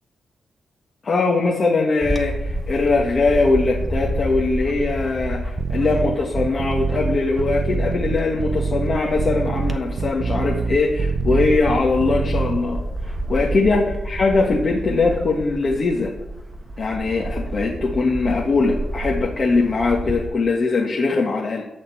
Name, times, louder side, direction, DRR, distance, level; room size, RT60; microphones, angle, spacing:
voice 1, 1.0-16.1 16.8-21.6, left 3 dB, 50° left, -1 dB, 1.6 m, -21 dB
Bird / Wind, 2.0-20.3, right 1 dB, 15° right, 1.5 m, -29 dB
sound 1, 5.6-12.6, right 6 dB, 70° right, 0.3 m, -25 dB
12.5 x 4.3 x 7.8 m, 0.95 s
cardioid pair, 80°, 0 cm